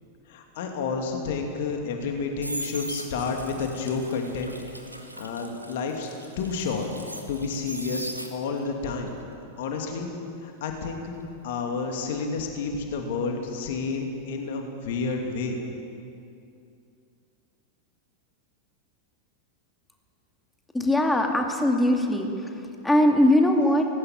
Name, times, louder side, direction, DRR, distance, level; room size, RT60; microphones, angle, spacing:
voice 1, 0.3-4.5 5.2-6.1 6.4-9.1 9.6-10.1 10.4-11.1 11.4-15.6, left 4 dB, 55° left, 3 dB, 2.7 m, -30 dB
sound 1, 2.0-8.7 9.1-12.0 12.2-12.6, equal, 90° right, 1.8 m, -40 dB
voice 2, 20.7-22.3 22.8-23.9, left 1 dB, 5° left, 2 dB, 2.4 m, -20 dB
19.0 x 17.0 x 9.2 m, 2.5 s
figure-of-eight pair, 90°, 0 cm